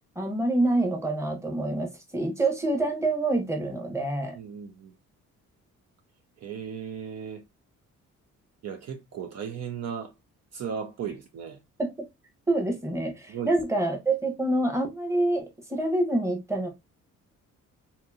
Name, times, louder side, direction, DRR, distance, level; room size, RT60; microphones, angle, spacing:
voice 1, 0.2-4.4 11.8-11.9 12.5-16.7, right 2 dB, 10° right, 1.0 m, -26 dB
voice 2, 4.4-4.9 6.4-7.4 8.6-10.1 10.5-11.6 13.3-13.5, right 7 dB, 60° right, 0.6 m, -36 dB
2.9 x 2.7 x 2.3 m
cardioid pair, 90°, 30 cm